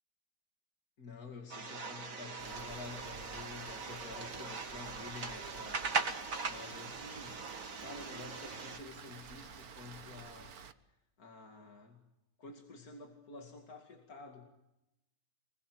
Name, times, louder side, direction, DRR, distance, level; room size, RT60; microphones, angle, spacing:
voice 1, 1.0-5.9 6.5-7.4 7.8-12.0 12.4-14.5, left 4 dB, 85° left, 2 dB, 2.9 m, -50 dB
sound 1, 1.5-8.8, right 4 dB, 65° right, 2.4 m, -40 dB
Rain, 2.4-10.7, right 7 dB, 85° right, 1.7 m, -51 dB
27.0 x 21.0 x 7.9 m, 0.91 s
omnidirectional pair, 1.5 m